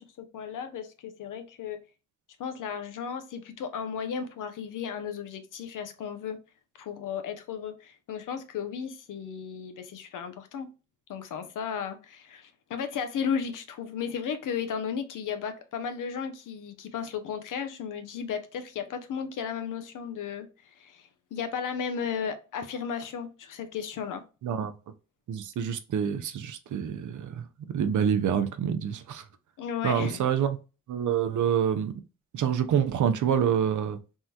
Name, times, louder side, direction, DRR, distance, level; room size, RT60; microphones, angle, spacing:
voice 1, 0.0-1.8 2.4-6.4 6.8-10.7 11.1-24.2 29.6-30.2, left 7 dB, 80° left, 0.6 m, -34 dB
voice 2, 25.3-27.5 27.7-29.2 29.8-30.6 30.9-32.0 32.3-34.0, right 8 dB, 70° right, 0.5 m, -27 dB
3.6 x 2.1 x 2.7 m
cardioid pair, 70°, 31 cm